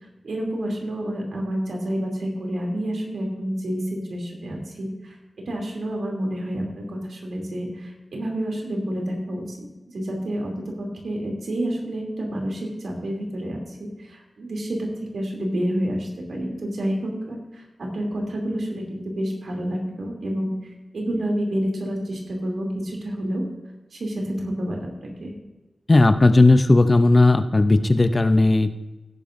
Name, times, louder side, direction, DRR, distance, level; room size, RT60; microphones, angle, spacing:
voice 1, 0.2-5.2 5.5-20.5 20.9-23.4 23.9-25.3, right 1 dB, 85° right, 0 dB, 2.9 m, -29 dB
voice 2, 25.9-28.7, left 2 dB, 30° left, 9 dB, 0.6 m, -16 dB
17.0 x 9.9 x 2.6 m, 1.1 s
wide cardioid pair, 125°, 0 cm